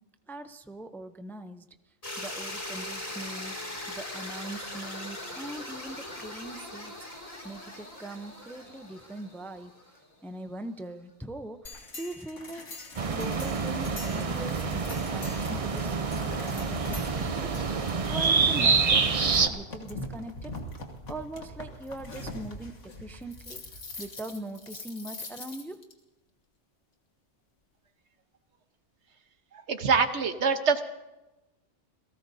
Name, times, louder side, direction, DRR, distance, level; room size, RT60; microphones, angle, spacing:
voice 1, 0.3-1.7 2.2-3.5 3.9-6.9 7.4-9.7 10.2-12.7 13.1-17.5 17.8-20.6 21.1-23.7 24.0-25.8, right 2 dB, 5° left, 9 dB, 0.4 m, -41 dB
sound 1, 2.0-10.0, left 1 dB, 30° left, 2.7 m, -40 dB
sound 2, 11.7-25.9, left 2 dB, 90° left, 2.1 m, -42 dB
sound 3, 13.0-19.5, right 5 dB, 35° right, 0.6 m, -27 dB
voice 2, 29.5-30.8, right 5 dB, 70° right, 8 dB, 1.4 m, -25 dB
28.5 x 17.5 x 2.7 m, 1.0 s
omnidirectional pair, 1.2 m